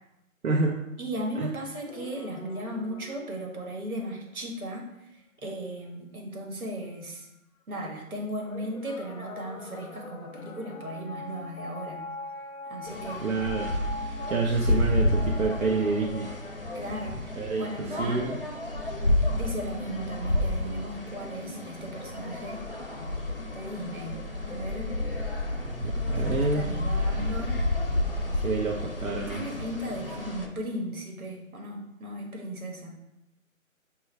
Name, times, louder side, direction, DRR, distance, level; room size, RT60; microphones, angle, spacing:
voice 1, 0.4-0.8 1.4-1.5 13.2-13.7 14.3-16.3 17.4-18.4 25.7-26.7 28.4-29.4, right 3 dB, 75° right, 0 dB, 0.6 m, -28 dB
voice 2, 1.0-7.3 7.7-12.0 12.7-13.3 16.7-18.3 19.3-22.7 23.5-25.0 26.1-27.6 29.3-32.9, right 1 dB, 90° right, 0 dB, 1.3 m, -36 dB
sound 1, 1.9-4.5 7.6-7.7 8.4-18.1, left 2 dB, 90° left, 0.6 m, -42 dB
sound 2, 12.9-30.5, left 1 dB, 45° left, 0.5 m, -30 dB
5.6 x 2.3 x 3.2 m, 0.87 s
figure-of-eight pair, 175°, 41 cm